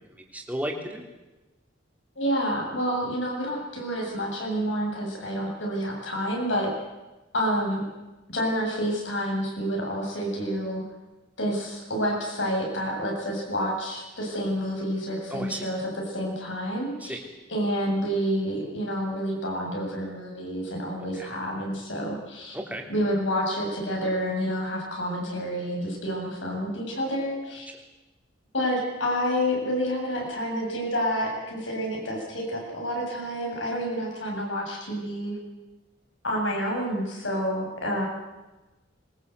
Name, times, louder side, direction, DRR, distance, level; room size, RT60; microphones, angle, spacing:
voice 1, 0.3-1.0 15.3-15.6 17.0-17.2 21.2-21.3 22.5-22.8, right 1 dB, 10° right, 2 dB, 3.0 m, -33 dB
voice 2, 2.2-6.7 7.3-7.8 8.3-10.8 11.4-17.2 17.5-22.6 22.9-27.7 28.5-35.4 36.2-38.1, equal, 75° left, 0 dB, 7.9 m, -29 dB
22.0 x 20.5 x 8.2 m, 1.1 s
head